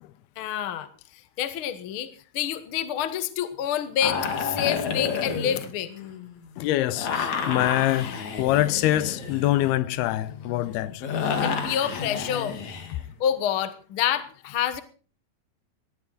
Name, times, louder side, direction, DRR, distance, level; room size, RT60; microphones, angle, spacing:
voice 1, 0.4-0.9 1.4-5.9 11.4-12.6 13.2-14.8, left 9 dB, 70° left, 1.2 m, -28 dB
sound 1, 4.0-6.4 6.9-13.0, left 6 dB, 55° left, 2.8 m, -31 dB
voice 2, 6.6-11.0 12.9-13.0, left 15 dB, 90° left, 2.8 m, -25 dB
18.5 x 14.0 x 4.0 m
omnidirectional pair, 4.4 m